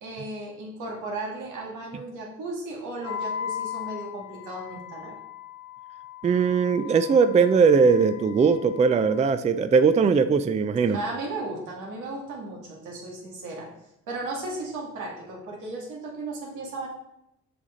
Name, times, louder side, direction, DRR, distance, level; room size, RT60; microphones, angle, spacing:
voice 1, 0.0-5.2 10.8-13.7 14.1-16.9, right 2 dB, 85° right, -2 dB, 2.0 m, -35 dB
Wind instrument woodwind instrument, 3.0-9.2, left 8 dB, 75° left, 1.1 m, -38 dB
voice 2, 6.2-11.0, right 5 dB, 25° right, 10 dB, 0.4 m, -20 dB
7.0 x 5.0 x 3.7 m, 0.84 s
cardioid pair, 90°, 30 cm